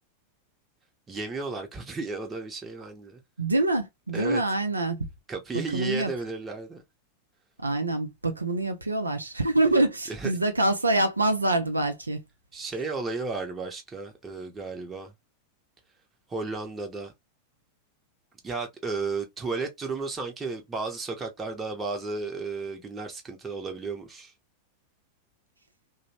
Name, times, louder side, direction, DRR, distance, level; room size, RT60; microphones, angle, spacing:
voice 1, 1.1-3.2 4.1-4.4 5.3-6.8 10.1-10.3 12.5-15.1 16.3-17.1 18.4-24.3, right 4 dB, 15° right, 0.8 m, -33 dB
voice 2, 3.4-5.0 5.5-6.1 7.6-12.2, right 2 dB, 80° right, 0.4 m, -25 dB
2.9 x 2.0 x 2.7 m
figure-of-eight pair, 90°, 0 cm